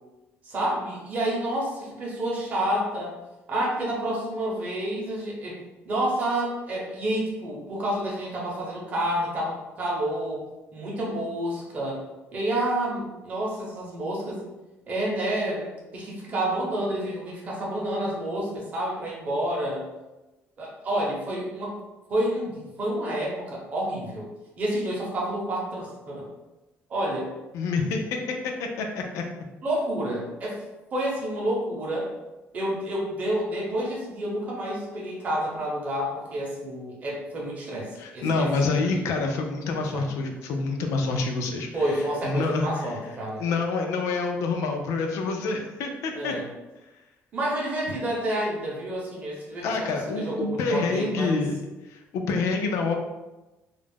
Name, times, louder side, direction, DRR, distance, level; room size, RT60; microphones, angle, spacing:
voice 1, 0.4-3.2 3.5-5.6 5.8-10.4 10.7-12.0 12.3-14.4 14.9-19.9 20.6-21.8 22.1-24.3 24.6-26.3 26.9-27.3 29.6-30.6 30.9-32.1 32.5-39.0 39.9-40.1 41.7-43.4 46.2-46.5 47.3-51.4, right 1 dB, 30° right, -4 dB, 0.7 m, -29 dB
voice 2, 27.5-28.2 28.4-29.2 38.0-41.7 41.9-43.0 43.4-46.3 49.6-51.5 51.9-52.9, left 3 dB, 80° left, 3 dB, 0.4 m, -27 dB
2.3 x 2.0 x 3.4 m, 1.0 s
cardioid pair, 175°, 5 cm